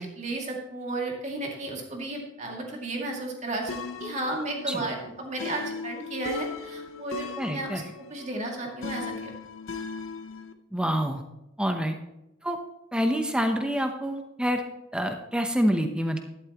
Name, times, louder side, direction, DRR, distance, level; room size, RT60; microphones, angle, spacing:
voice 1, 0.0-7.8 8.1-9.3, right 2 dB, 35° right, 0 dB, 2.3 m, -33 dB
sound 1, 3.7-10.5, left 4 dB, 90° left, 0.9 m, -38 dB
voice 2, 7.4-7.8 10.7-11.2 11.6-12.0 12.4-12.6 12.9-14.6 14.9-16.2, equal, 5° right, 5 dB, 0.8 m, -27 dB
12.0 x 12.0 x 3.0 m, 0.90 s
head